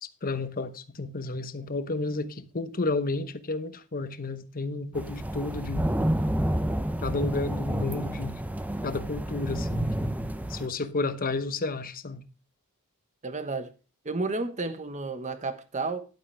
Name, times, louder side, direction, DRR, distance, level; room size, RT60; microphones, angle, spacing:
voice 1, 0.0-5.9 7.0-8.4 8.8-10.1 10.5-12.2, left 3 dB, 40° left, 0.9 m, -32 dB
sound 1, 4.9-10.7, right 1 dB, 5° right, 0.7 m, -29 dB
voice 2, 7.6-8.1 13.2-13.7 14.0-16.0, right 3 dB, 35° right, 1.2 m, -32 dB
11.5 x 8.7 x 3.4 m
head